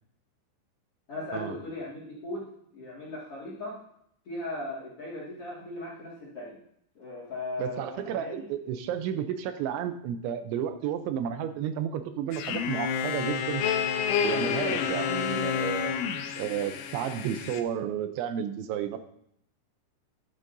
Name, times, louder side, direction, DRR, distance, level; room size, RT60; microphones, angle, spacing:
voice 1, 1.1-3.8 4.2-6.6 6.9-8.5, left 2 dB, 45° left, -6 dB, 2.1 m, -38 dB
voice 2, 7.6-13.6 14.2-16.0 16.4-19.0, right 9 dB, 80° right, 9 dB, 3.0 m, -32 dB
sound 1, 12.3-17.6, left 7 dB, 75° left, 2.6 m, -29 dB
12.0 x 11.0 x 2.7 m, 0.72 s
omnidirectional pair, 5.4 m